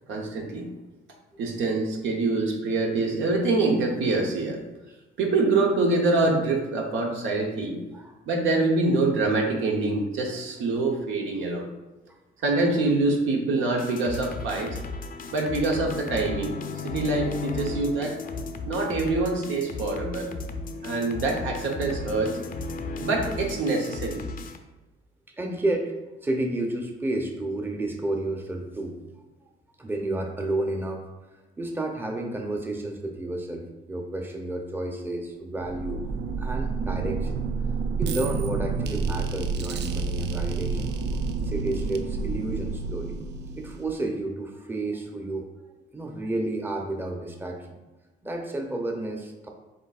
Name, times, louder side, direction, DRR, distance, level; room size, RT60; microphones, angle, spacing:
voice 1, 0.1-0.7 1.4-4.6 5.2-7.8 8.3-11.6 12.4-14.8 15.3-16.5 16.8-18.2 18.7-20.3 20.8-22.4 23.0-24.2, right 3 dB, 80° right, 1 dB, 0.9 m, -25 dB
sound 1, 13.8-24.6, left 3 dB, 45° left, 0.5 m, -35 dB
voice 2, 25.4-25.9 26.2-29.2 29.8-31.0 31.6-36.0 36.4-37.4 38.0-40.9 41.4-43.2 43.6-45.5 45.9-47.8 48.2-49.5, right 2 dB, 10° right, 2 dB, 0.6 m, -31 dB
sound 2, 35.5-44.1, right 4 dB, 60° right, 0.4 m, -29 dB
7.5 x 2.6 x 2.4 m, 1.1 s
cardioid pair, 90°, 20 cm